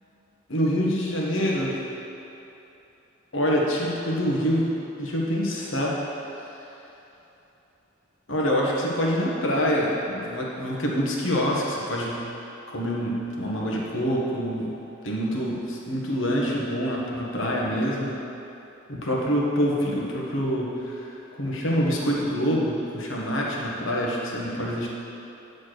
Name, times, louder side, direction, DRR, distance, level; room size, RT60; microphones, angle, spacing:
voice 1, 0.5-1.8 3.3-4.7 5.0-6.0 8.3-12.2 12.7-14.7 15.0-18.1 18.9-24.9, equal, 65° left, -3 dB, 1.4 m, -26 dB
9.5 x 4.4 x 6.6 m, 2.9 s
head